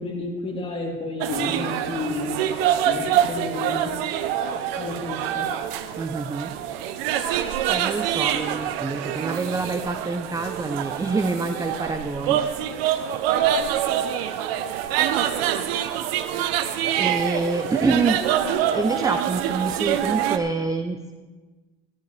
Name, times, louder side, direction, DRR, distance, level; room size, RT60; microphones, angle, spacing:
voice 1, 0.0-2.4 2.8-3.9 4.8-5.5, left 2 dB, 20° left, -1 dB, 2.9 m, -31 dB
sound 1, 1.2-20.4, right 10 dB, 85° right, 0.8 m, -25 dB
voice 2, 6.0-6.5 7.7-12.4 16.2-16.4 16.9-18.2 18.7-21.1, right 3 dB, 10° right, 8 dB, 0.6 m, -26 dB
14.5 x 14.0 x 3.3 m, 1.3 s
supercardioid pair, 90°, 29 cm